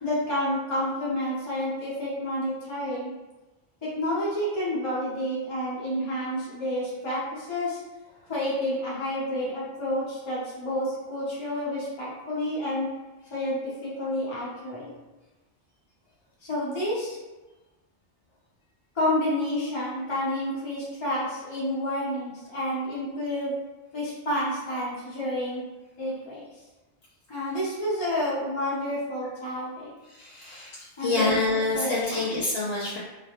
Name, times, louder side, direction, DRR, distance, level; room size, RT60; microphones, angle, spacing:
voice 1, 0.0-3.1 3.8-7.8 8.3-12.9 13.3-14.9 16.4-17.2 18.9-23.5 23.9-25.6 26.0-26.6 27.3-29.9 31.0-32.4, left 1 dB, 35° left, -7 dB, 0.5 m, -29 dB
voice 2, 30.2-33.0, left 3 dB, 85° left, -7 dB, 0.9 m, -27 dB
2.2 x 2.1 x 2.8 m, 1.1 s
omnidirectional pair, 1.2 m